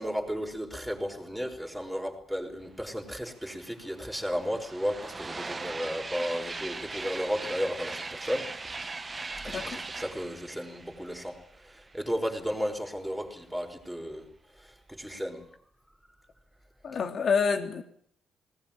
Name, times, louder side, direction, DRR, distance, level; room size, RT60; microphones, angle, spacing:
voice 1, 0.0-8.5 9.4-14.3 14.6-15.5, equal, 5° right, 2 dB, 5.3 m, -34 dB
sound 1, 3.2-3.3 3.5-12.1, right 3 dB, 25° right, 1.5 m, -40 dB
voice 2, 9.5-9.8 16.8-17.8, left 5 dB, 55° left, 5 dB, 3.3 m, -28 dB
20.0 x 19.5 x 9.0 m, 0.66 s
cardioid pair, 90°, 0 cm